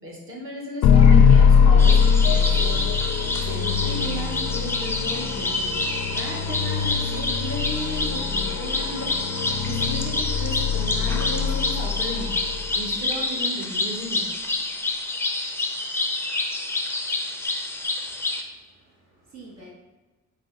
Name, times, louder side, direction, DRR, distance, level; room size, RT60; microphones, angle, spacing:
voice 1, 0.0-2.9 3.4-5.7 6.1-9.1 9.6-12.3 12.7-14.2, equal, 45° right, -3 dB, 1.3 m, -35 dB
sound 1, 0.8-13.0, left 6 dB, 70° left, 0.4 m, -21 dB
sound 2, 1.8-18.4, left 2 dB, 10° left, 0.5 m, -28 dB
voice 2, 18.0-19.7, right 3 dB, 60° right, -6 dB, 1.2 m, -49 dB
4.7 x 2.3 x 3.7 m, 1.2 s
cardioid pair, 90°, 30 cm